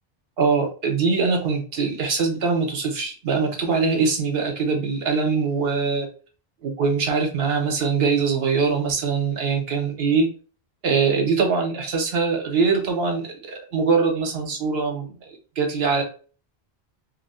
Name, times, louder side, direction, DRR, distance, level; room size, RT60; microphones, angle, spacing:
voice 1, 0.4-6.1 6.6-10.3 10.8-15.3 15.6-16.0, right 5 dB, 75° right, 3 dB, 1.1 m, -22 dB
2.8 x 2.1 x 4.1 m, 0.38 s
omnidirectional pair, 1.0 m